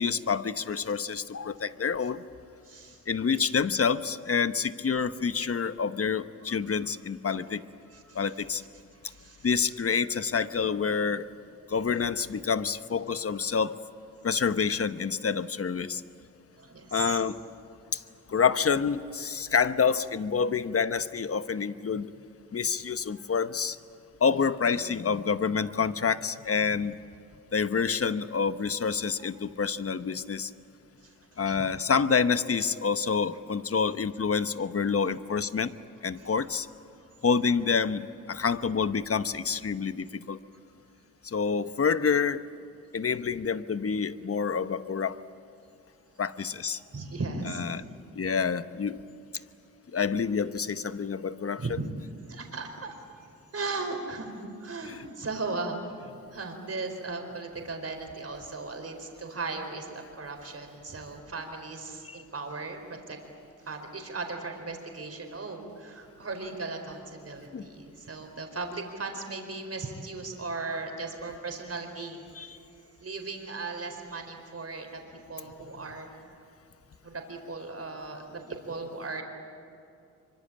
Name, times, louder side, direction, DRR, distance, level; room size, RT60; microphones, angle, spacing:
voice 1, 0.0-2.2 3.1-7.6 8.1-8.6 9.4-11.3 11.7-13.8 14.2-16.0 16.9-17.4 17.9-18.0 18.3-22.1 22.5-23.8 24.2-27.0 27.5-30.5 31.4-35.7 36.0-36.7 37.2-40.4 41.2-42.4 42.9-45.2 46.2-46.8 47.6-47.8 48.2-49.0 49.9-51.6 54.9-55.0 62.1-62.2 67.5-67.7 72.4-72.6, left 6 dB, 45° left, 12 dB, 1.0 m, -27 dB
voice 2, 2.6-3.0 6.7-6.8 7.8-8.3 9.0-9.5 16.6-17.2 26.6-26.8 31.0-31.7 36.2-36.3 46.9-47.7 51.6-51.9 52.3-53.3 53.5-55.8 56.3-63.2 63.6-72.5 73.0-75.0 75.3-76.1 77.0-79.2, right 3 dB, 45° right, 4 dB, 4.6 m, -37 dB
25.0 x 24.0 x 8.6 m, 2.6 s
cardioid pair, 70°, 33 cm